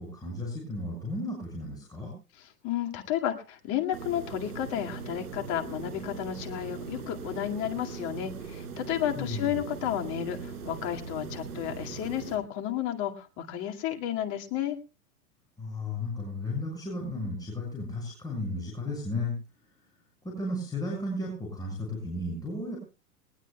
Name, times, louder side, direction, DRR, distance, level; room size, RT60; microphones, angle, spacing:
voice 1, 0.0-2.1 9.2-9.6 15.6-19.3 20.2-22.8, left 2 dB, 10° left, -2 dB, 6.2 m, -34 dB
voice 2, 2.6-14.8, left 11 dB, 40° left, 4 dB, 2.2 m, -32 dB
sound 1, 3.9-12.4, right 5 dB, 70° right, 4.9 m, -40 dB
21.5 x 19.5 x 2.3 m, 0.31 s
hypercardioid pair, 120°, 47 cm